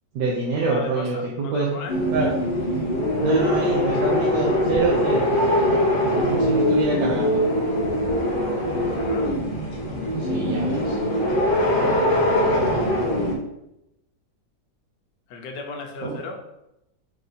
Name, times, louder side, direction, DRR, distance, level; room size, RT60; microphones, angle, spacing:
voice 1, 0.1-1.8 2.1-2.3 3.2-5.3 6.0-7.4 10.2-11.0 11.7-12.1 16.0-16.2, right 3 dB, 70° right, -3 dB, 1.4 m, -26 dB
voice 2, 0.7-2.0 8.9-9.3 15.3-16.4, left 3 dB, 75° left, 2 dB, 1.4 m, -36 dB
sound 1, 1.9-13.4, left 1 dB, 55° left, 0.5 m, -22 dB
4.8 x 2.7 x 4.0 m, 0.85 s
omnidirectional pair, 1.9 m